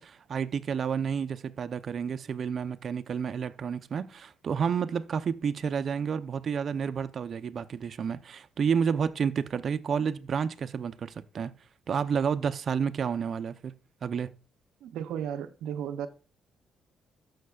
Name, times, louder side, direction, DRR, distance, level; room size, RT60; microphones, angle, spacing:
voice 1, 0.0-11.5 11.9-13.7 14.0-14.3, right 6 dB, 55° right, 0.7 m, -30 dB
voice 2, 14.8-16.1, right 9 dB, 90° right, 0.6 m, -34 dB
13.0 x 6.6 x 2.4 m
cardioid pair, 90°, 0 cm